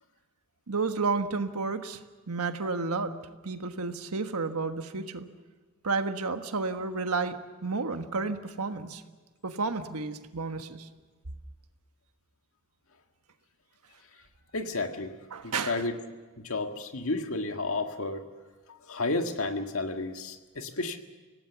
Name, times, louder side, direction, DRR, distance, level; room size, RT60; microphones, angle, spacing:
voice 1, 0.7-2.0 2.3-3.1 3.4-5.3 5.8-9.0 9.4-10.9 15.3-15.8, right 4 dB, 85° right, 8 dB, 1.4 m, -31 dB
voice 2, 14.5-15.2 15.4-15.9 16.4-18.2 18.7-21.0, left 2 dB, 70° left, 5 dB, 1.8 m, -32 dB
25.5 x 18.0 x 7.0 m, 1.4 s
head